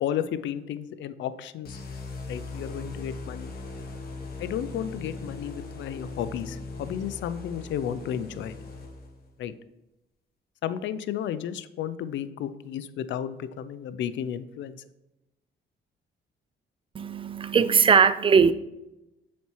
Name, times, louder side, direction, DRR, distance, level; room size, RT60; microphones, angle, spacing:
voice 1, 0.0-1.8 2.3-3.5 4.4-8.5 9.4-9.5 10.6-14.8, left 9 dB, 70° left, 14 dB, 0.4 m, -33 dB
sound 1, 1.6-9.3, left 3 dB, 50° left, 1.3 m, -39 dB
voice 2, 16.9-18.5, right 6 dB, 25° right, 14 dB, 0.3 m, -19 dB
7.1 x 4.3 x 3.1 m, 0.93 s
cardioid pair, 90°, 20 cm